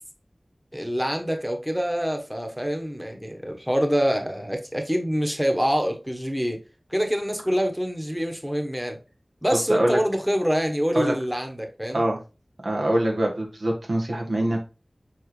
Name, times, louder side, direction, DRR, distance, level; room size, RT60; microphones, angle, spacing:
voice 1, 0.7-6.6 6.9-9.0 9.4-12.0, equal, 10° right, 1.2 m, -25 dB
voice 2, 9.7-10.0 10.9-11.1 11.9-12.2 12.6-14.6, right 1 dB, 85° right, 1.5 m, -24 dB
7.2 x 4.4 x 3.2 m
wide cardioid pair, 55°, 0 cm